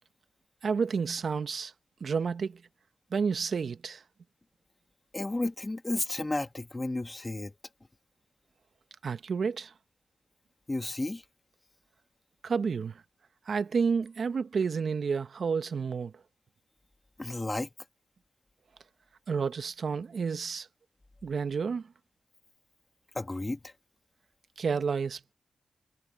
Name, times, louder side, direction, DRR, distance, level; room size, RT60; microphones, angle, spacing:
voice 1, 0.6-1.7 2.0-2.6 3.1-4.0 9.0-9.7 12.4-13.0 13.5-16.2 19.3-20.7 21.2-21.9 24.6-25.3, right 5 dB, 65° right, 1.2 m, -30 dB
voice 2, 5.1-7.5 10.7-11.2 17.2-17.7 23.1-23.7, left 2 dB, 25° left, 2.1 m, -32 dB
cardioid pair, 50°, 0 cm